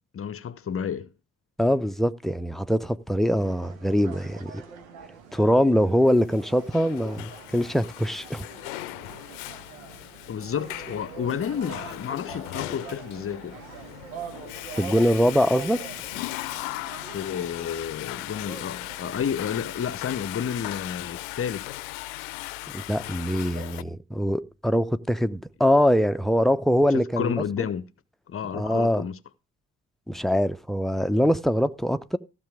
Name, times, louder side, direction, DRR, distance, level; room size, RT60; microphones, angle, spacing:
voice 1, 0.1-1.1 10.3-13.6 17.1-21.9 27.2-27.8 28.3-29.2, left 8 dB, 30° left, 0.8 m, -31 dB
voice 2, 1.6-4.6 5.3-8.4 14.8-15.8 22.7-27.3 28.5-29.0 30.1-32.2, equal, ahead, 0.7 m, -23 dB
sound 1, 3.4-19.2, right 6 dB, 75° right, 1.4 m, -44 dB
Water / Toilet flush, 6.3-23.8, left 18 dB, 65° left, 0.7 m, -38 dB
15.0 x 6.8 x 4.9 m
figure-of-eight pair, 45°, 42 cm